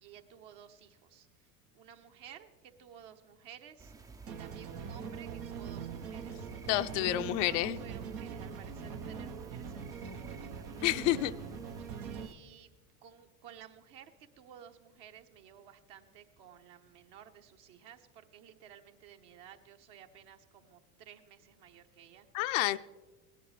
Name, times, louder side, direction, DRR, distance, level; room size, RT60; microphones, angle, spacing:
voice 1, 0.0-3.9 4.4-6.5 7.5-10.9 12.1-12.7 13.0-22.3, right 9 dB, 55° right, 6 dB, 1.2 m, -55 dB
sound 1, 3.8-12.3, right 4 dB, 10° right, 0.3 m, -52 dB
sound 2, 4.3-12.3, right 6 dB, 80° right, 1.1 m, -42 dB
voice 2, 6.7-7.8 10.8-11.3 22.3-22.8, left 15 dB, 55° left, 13 dB, 0.5 m, -29 dB
18.0 x 10.5 x 3.2 m, 1.2 s
hypercardioid pair, 85°, 46 cm